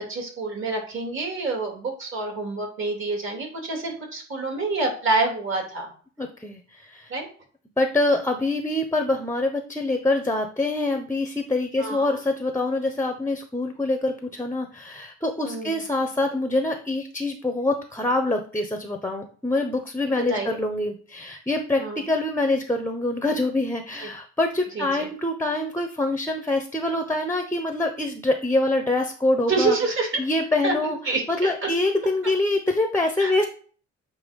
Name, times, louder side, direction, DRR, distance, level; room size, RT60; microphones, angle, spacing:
voice 1, 0.1-5.9 7.1-7.3 11.8-12.1 15.4-15.8 20.3-20.6 21.8-22.0 24.0-24.1 24.8-25.1 29.5-30.1 30.6-31.2 33.2-33.3, right 3 dB, 40° right, -1 dB, 3.3 m, -27 dB
voice 2, 6.2-7.1 7.8-29.8 30.2-31.0 31.3-33.5, left 2 dB, 10° left, 5 dB, 0.9 m, -25 dB
8.1 x 2.9 x 5.3 m, 0.41 s
cardioid pair, 90°, 30 cm